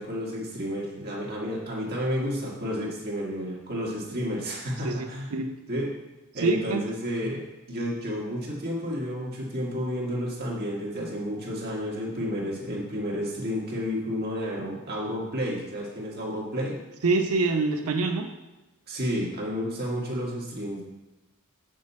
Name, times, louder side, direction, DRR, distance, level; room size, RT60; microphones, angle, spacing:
voice 1, 0.0-5.3 5.7-5.9 6.3-16.8 18.9-20.8, equal, 45° right, -3 dB, 1.9 m, -31 dB
voice 2, 4.8-5.5 6.4-6.8 17.0-18.3, right 3 dB, 80° right, 5 dB, 0.7 m, -25 dB
8.6 x 6.6 x 4.2 m, 1.1 s
head